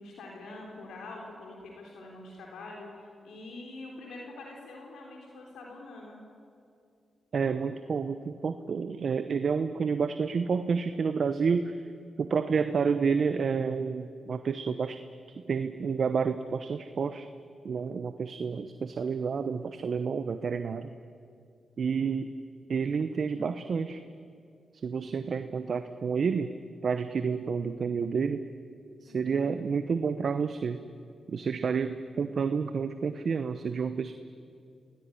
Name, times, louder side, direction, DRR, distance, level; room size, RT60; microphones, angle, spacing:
voice 1, 0.0-6.2 29.1-29.5, left 2 dB, 90° left, -1 dB, 3.8 m, -45 dB
voice 2, 7.3-11.7 12.2-15.0 15.4-17.3 17.6-20.9 21.8-22.3 22.7-24.0 24.8-26.5 26.8-28.5 29.0-30.8 31.3-34.2, right 5 dB, 65° right, 10 dB, 0.9 m, -29 dB
26.5 x 17.5 x 9.9 m, 2.4 s
cardioid pair, 55°, 0 cm